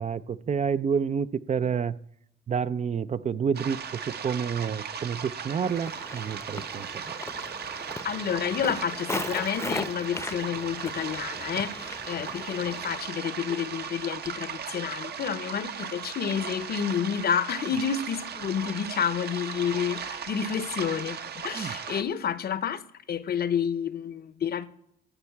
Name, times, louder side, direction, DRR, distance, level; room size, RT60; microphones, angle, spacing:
voice 1, 0.0-2.0 2.5-7.2 21.5-21.8, right 6 dB, 35° right, 0.5 m, -29 dB
sound 1, 3.5-22.0, right 7 dB, 55° right, 1.0 m, -37 dB
Walk footsteps, 5.6-13.0, left 2 dB, 15° left, 0.7 m, -38 dB
voice 2, 8.0-22.8 23.1-24.7, left 8 dB, 50° left, 0.8 m, -29 dB
13.0 x 4.4 x 8.3 m
cardioid pair, 90°, 20 cm